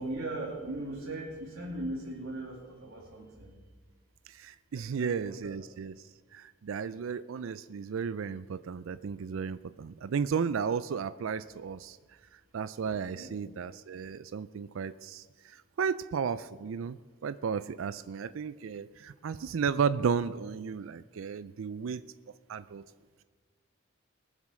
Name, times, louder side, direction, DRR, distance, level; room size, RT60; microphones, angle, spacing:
voice 1, 0.0-3.5 4.7-5.6 13.1-13.4, right 2 dB, 85° right, -4 dB, 2.5 m, -39 dB
voice 2, 4.3-5.9 6.3-12.0 12.5-22.0 22.5-22.8, right 6 dB, 70° right, 15 dB, 0.4 m, -34 dB
20.5 x 7.4 x 6.3 m, 1.4 s
head